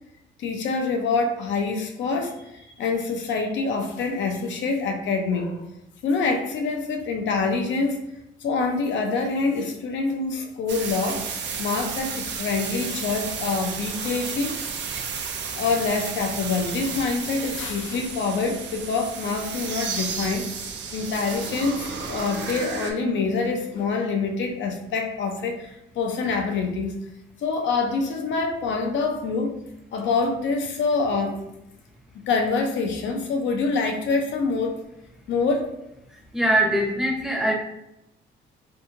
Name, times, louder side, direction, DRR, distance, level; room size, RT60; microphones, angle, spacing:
voice 1, 0.4-5.6 6.0-8.0 8.4-11.2 11.6-14.6 15.6-20.5 20.9-27.0 27.4-29.6 29.9-31.4 32.3-34.8 35.3-35.7, left 4 dB, 70° left, 3 dB, 0.5 m, -26 dB
sound 1, 10.7-22.9, right 6 dB, 65° right, 0.5 m, -32 dB
voice 2, 36.1-37.5, right 1 dB, ahead, -1 dB, 0.7 m, -22 dB
2.7 x 2.7 x 2.5 m, 0.86 s
cardioid pair, 90°, 20 cm